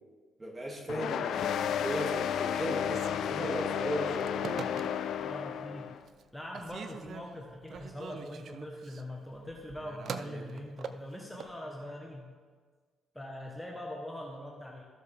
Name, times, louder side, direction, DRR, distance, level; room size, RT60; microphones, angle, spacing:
voice 1, 0.4-4.7, right 1 dB, 20° right, -2 dB, 2.2 m, -36 dB
sound 1, 0.9-6.0, left 9 dB, 70° left, 0.4 m, -32 dB
Telephone, 2.8-5.3 5.8-6.3 6.5-11.6, right 6 dB, 60° right, 0.5 m, -44 dB
voice 2, 5.2-5.9 6.3-12.3 13.1-14.8, left 1 dB, 5° left, -1 dB, 1.1 m, -42 dB
14.0 x 6.6 x 3.4 m, 1.5 s
cardioid pair, 90°, 0 cm